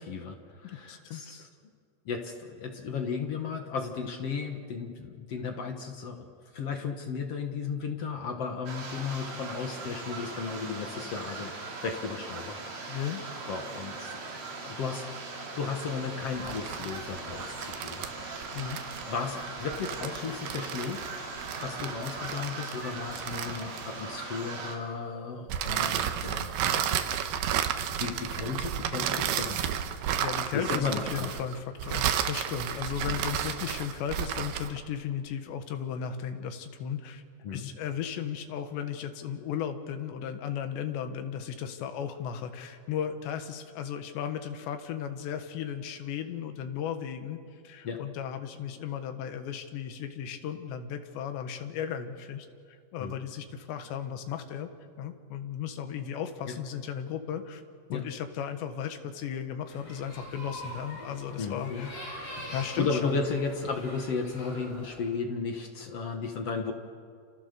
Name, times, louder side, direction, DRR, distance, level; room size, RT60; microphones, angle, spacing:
voice 1, 0.0-1.5 2.1-6.3 6.5-12.6 13.5-14.2 14.6-15.1 15.6-18.6 19.1-21.1 21.6-26.6 28.0-29.7 30.5-31.3 37.4-37.7 47.8-48.0 53.0-53.2 56.5-56.6 57.9-58.0 61.4-61.9 62.8-66.7, left 5 dB, 60° left, 4 dB, 1.7 m, -34 dB
voice 2, 0.6-1.2 12.9-13.2 18.5-18.8 30.2-37.2 37.5-47.4 47.7-52.5 52.9-54.7 55.0-57.6 57.9-62.0 62.5-63.2, left 8 dB, 85° left, 7 dB, 3.7 m, -35 dB
sound 1, 8.7-24.8, right 3 dB, 45° right, 4.1 m, -40 dB
sound 2, 16.4-24.2 25.5-34.8, right 9 dB, 70° right, 2.8 m, -32 dB
sound 3, 59.7-65.0, equal, 35° left, 9.0 m, -43 dB
28.5 x 28.0 x 6.8 m, 2.2 s
omnidirectional pair, 4.9 m